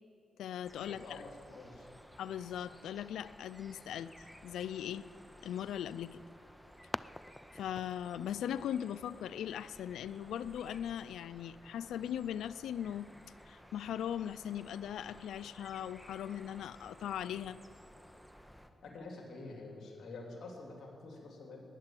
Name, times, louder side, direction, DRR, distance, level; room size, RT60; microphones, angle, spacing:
voice 1, 0.4-1.2 2.2-4.1 4.4-5.1 5.4-6.2 7.5-13.1 13.5-17.6, left 10 dB, 90° left, 17 dB, 0.4 m, -39 dB
sound 1, 0.6-18.7, equal, ahead, 1.3 m, -56 dB
voice 2, 1.0-1.9 18.8-21.6, left 3 dB, 70° left, 0 dB, 3.3 m, -47 dB
sound 2, 6.0-11.1, left 1 dB, 20° left, 0.4 m, -49 dB
19.5 x 7.5 x 9.0 m, 2.8 s
cardioid pair, 60°, 0 cm